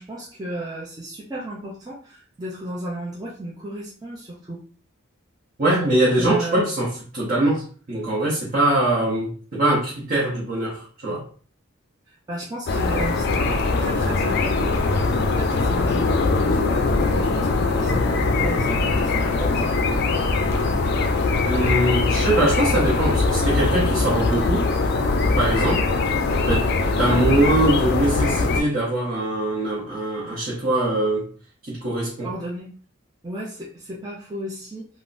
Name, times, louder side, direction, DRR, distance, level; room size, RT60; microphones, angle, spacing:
voice 1, 0.0-4.6 6.1-6.7 12.1-14.8 15.3-19.8 32.2-32.7 33.2-34.9, right 1 dB, 20° right, -5 dB, 0.5 m, -34 dB
voice 2, 5.6-6.9 7.1-11.2 21.4-24.6 25.3-25.8 26.5-31.3 31.6-32.3, right 1 dB, 45° right, -7 dB, 0.8 m, -22 dB
sound 1, 12.7-28.6, left 3 dB, 50° left, 0.4 m, -21 dB
3.6 x 2.0 x 2.5 m, 0.43 s
head